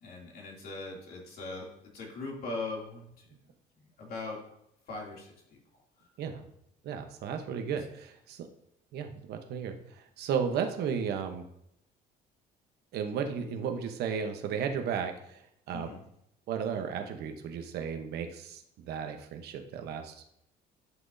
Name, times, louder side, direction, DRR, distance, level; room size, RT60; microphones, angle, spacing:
voice 1, 0.0-1.7 1.9-3.2 3.8-4.4 4.9-5.3 15.7-16.0, left 3 dB, 65° left, -2 dB, 2.8 m, -40 dB
voice 2, 6.8-8.5 8.9-11.4 12.9-15.9 16.5-20.4, right 7 dB, 75° right, 6 dB, 1.0 m, -34 dB
11.0 x 6.0 x 2.7 m, 0.76 s
cardioid pair, 110°, 17 cm